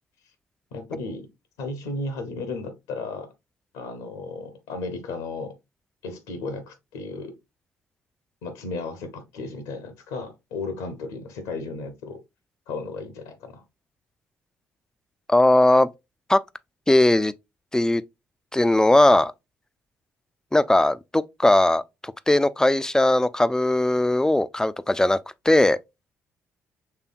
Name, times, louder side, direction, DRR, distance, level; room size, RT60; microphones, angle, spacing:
voice 1, 0.7-1.3 1.6-3.3 3.7-5.6 6.0-7.3 8.4-12.2 12.7-13.6, left 3 dB, 70° left, 0.9 m, -34 dB
voice 2, 15.3-15.9 16.3-16.4 16.9-17.3 17.7-18.0 18.5-19.3 20.5-25.2 25.5-25.8, left 1 dB, 10° left, 0.4 m, -19 dB
5.8 x 3.4 x 2.5 m
figure-of-eight pair, 45°, 7 cm